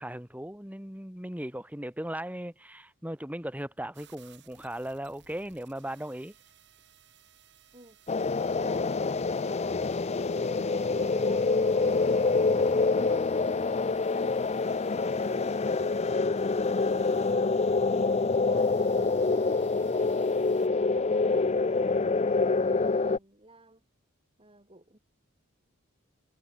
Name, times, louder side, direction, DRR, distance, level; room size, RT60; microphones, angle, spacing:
voice 1, 0.0-6.3, right 1 dB, 5° right, 2.9 m, -37 dB
sound 1, 3.9-20.7, right 9 dB, 60° right, 7.0 m, -60 dB
sound 2, 8.1-23.2, left 3 dB, 30° left, 0.5 m, -26 dB
voice 2, 8.4-14.4 14.7-23.8 24.4-25.0, right 2 dB, 25° right, 7.1 m, -55 dB
head